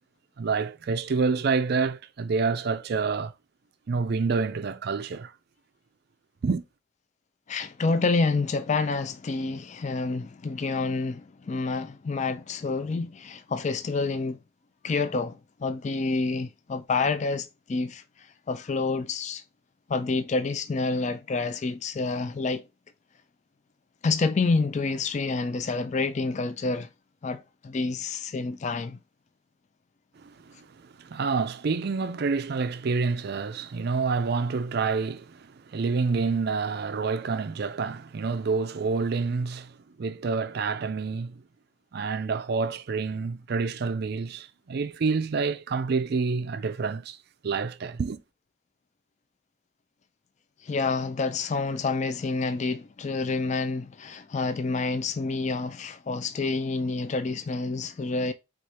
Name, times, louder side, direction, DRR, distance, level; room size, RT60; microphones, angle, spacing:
voice 1, 0.4-3.3 3.9-5.3 6.4-6.6 30.2-41.4 41.9-47.2 47.4-48.2, right 4 dB, 50° right, 0.4 m, -28 dB
voice 2, 7.5-14.4 14.8-19.4 19.9-22.7 24.0-26.9 27.2-29.0 50.6-58.3, left 3 dB, 35° left, 0.3 m, -28 dB
4.8 x 2.5 x 4.2 m
head